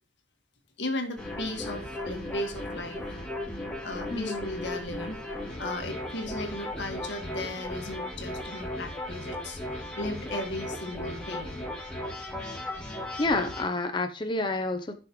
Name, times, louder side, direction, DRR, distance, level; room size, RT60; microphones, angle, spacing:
voice 1, 0.8-3.0 3.8-11.5, left 1 dB, 85° left, 4 dB, 1.8 m, -36 dB
sound 1, 1.2-13.6, left 1 dB, 5° left, 2.3 m, -36 dB
voice 2, 4.1-4.5 12.5-12.6 13.2-14.9, left 2 dB, 25° left, 6 dB, 0.7 m, -29 dB
11.0 x 6.2 x 3.1 m, 0.35 s
head